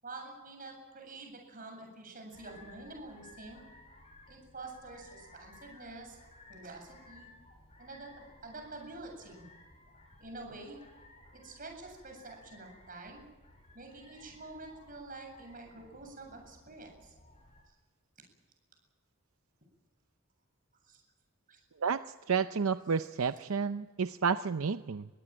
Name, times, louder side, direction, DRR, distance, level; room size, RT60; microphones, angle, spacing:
voice 1, 0.0-3.6 4.3-6.2 6.5-7.3 7.8-9.5 10.2-10.8 11.3-13.2 13.7-17.1 17.7-17.8 20.8-21.0 21.5-21.6, right 2 dB, 40° right, 3 dB, 8.0 m, -47 dB
sound 1, 2.3-17.6, left 2 dB, 30° left, 6.7 m, -58 dB
voice 2, 22.3-25.1, right 5 dB, 80° right, 11 dB, 0.6 m, -30 dB
23.5 x 17.0 x 9.0 m, 1.3 s
head